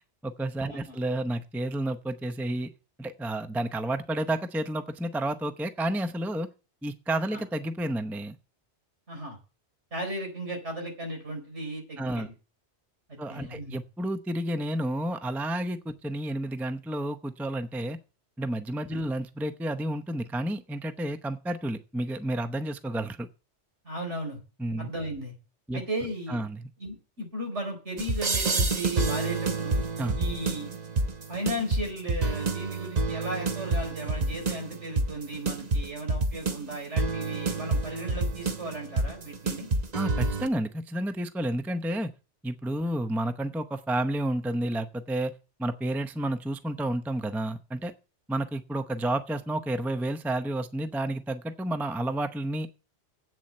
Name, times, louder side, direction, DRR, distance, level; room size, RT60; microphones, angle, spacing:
voice 1, 0.0-2.7 3.0-6.5 6.8-8.4 12.0-12.3 13.2-18.0 18.4-23.3 24.6-24.9 25.7-25.8 26.3-26.7 30.0-30.2 39.9-42.1 42.4-45.3 45.6-47.9 48.3-52.7, right 1 dB, ahead, 10 dB, 0.5 m, -31 dB
voice 2, 9.1-9.4 9.9-12.3 13.1-13.8 18.9-19.0 23.8-24.4 24.8-25.3 25.7-26.4 26.8-29.8 30.2-30.7 31.3-39.7, right 1 dB, 75° right, 2 dB, 4.7 m, -36 dB
sound 1, 28.0-40.5, right 3 dB, 40° right, 1.0 m, -28 dB
8.4 x 7.3 x 7.6 m, 0.33 s
omnidirectional pair, 1.2 m